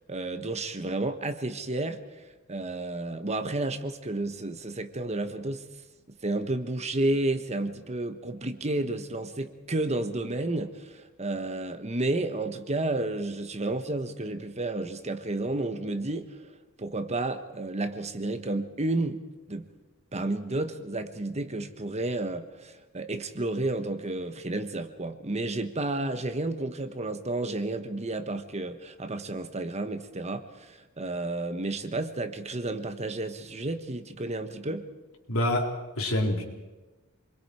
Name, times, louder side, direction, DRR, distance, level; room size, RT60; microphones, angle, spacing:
voice 1, 0.1-2.0 2.5-5.7 6.2-16.5 16.8-19.2 19.5-19.7 20.1-34.8, right 2 dB, 30° right, 9 dB, 1.3 m, -31 dB
voice 2, 35.3-36.4, left 1 dB, 75° left, 1 dB, 4.1 m, -27 dB
28.0 x 22.0 x 4.9 m, 1.2 s
head